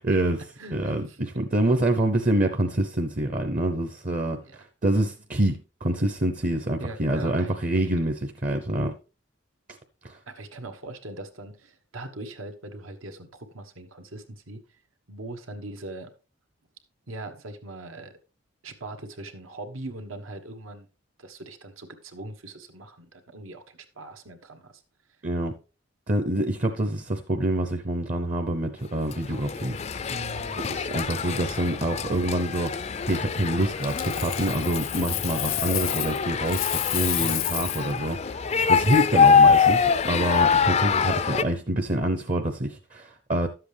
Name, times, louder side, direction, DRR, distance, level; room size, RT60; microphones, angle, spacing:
voice 1, 0.0-0.4 0.7-8.9 10.0-10.2 25.2-25.5 26.1-29.8 30.6-43.5, right 1 dB, 40° right, 0.7 m, -26 dB
voice 2, 0.6-1.3 4.4-4.6 6.8-7.5 10.3-14.6 15.1-16.1 17.1-18.1 18.6-20.9 21.2-24.8 30.1-30.6 37.2-37.6, right 2 dB, 85° right, 1.4 m, -40 dB
sound 1, 29.1-41.4, left 6 dB, 30° left, 0.4 m, -24 dB
Coin (dropping), 33.8-36.2 36.5-37.9 40.7-41.0, left 15 dB, 75° left, 0.7 m, -30 dB
11.5 x 7.7 x 3.3 m
head